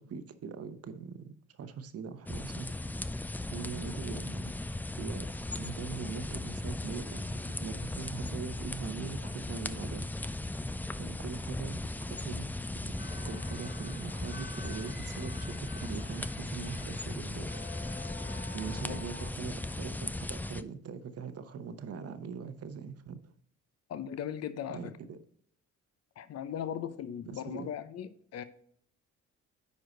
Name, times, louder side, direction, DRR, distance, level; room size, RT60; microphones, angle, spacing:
voice 1, 0.0-2.8 3.5-4.5 5.0-5.3 5.6-7.3 7.6-10.1 11.0-12.5 12.8-13.0 13.2-17.6 18.5-23.3 24.7-25.2 27.2-27.7, right 6 dB, 55° right, 0.9 m, -42 dB
sound 1, 2.3-20.6, left 2 dB, 5° left, 0.3 m, -37 dB
sound 2, 13.0-19.3, left 3 dB, 30° left, 1.3 m, -49 dB
voice 2, 23.9-24.9 26.2-28.4, left 9 dB, 55° left, 0.7 m, -38 dB
9.7 x 4.7 x 3.9 m
cardioid pair, 90°, 30 cm